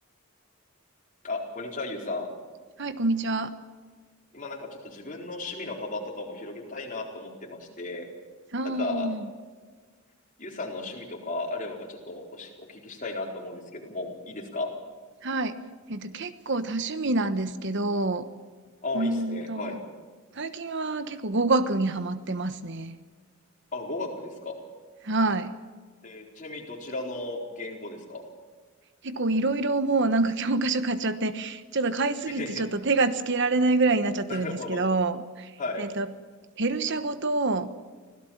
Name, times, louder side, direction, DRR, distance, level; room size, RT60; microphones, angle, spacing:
voice 1, 1.2-2.3 4.3-8.1 8.6-9.1 10.4-14.7 18.8-19.8 23.7-24.5 26.0-28.2 32.3-32.6 34.3-34.9 35.6-35.8, left 2 dB, 40° left, 0 dB, 4.3 m, -35 dB
voice 2, 2.8-3.5 8.5-9.2 15.2-15.5 15.9-18.3 18.9-19.8 20.3-23.0 25.0-25.5 29.0-35.5 35.8-36.1 36.6-37.7, right 2 dB, 55° right, 11 dB, 1.2 m, -26 dB
25.5 x 17.0 x 7.3 m, 1.4 s
head